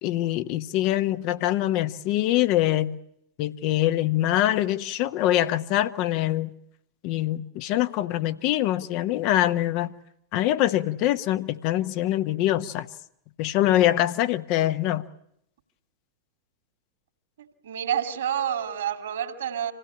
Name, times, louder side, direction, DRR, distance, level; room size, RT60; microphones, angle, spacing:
voice 1, 0.0-3.0 3.4-6.5 7.0-9.9 10.3-12.9 13.4-15.0, left 14 dB, 45° left, 1.0 m, -24 dB
voice 2, 17.4-19.7, right 9 dB, 65° right, 2.8 m, -29 dB
26.0 x 17.0 x 9.9 m
figure-of-eight pair, 90°, 0 cm